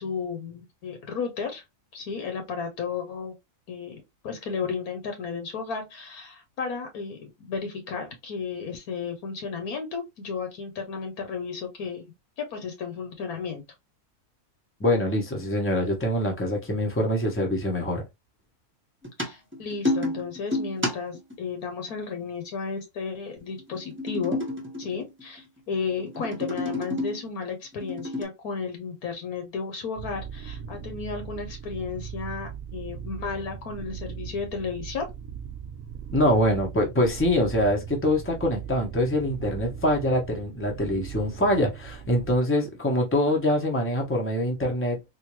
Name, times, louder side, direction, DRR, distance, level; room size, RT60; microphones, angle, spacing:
voice 1, 0.0-1.6 1.9-3.3 3.7-12.1 12.4-13.6 19.2-24.4 24.8-35.1, left 5 dB, 75° left, 1.4 m, -33 dB
voice 2, 14.8-18.0 36.1-45.0, left 1 dB, 10° left, 0.7 m, -24 dB
sound 1, 19.0-21.3 23.6-25.4 25.9-27.2 27.7-28.2, left 1 dB, 10° right, 1.0 m, -30 dB
sound 2, 30.0-42.4, right 8 dB, 65° right, 0.9 m, -39 dB
3.7 x 2.6 x 3.0 m
omnidirectional pair, 1.6 m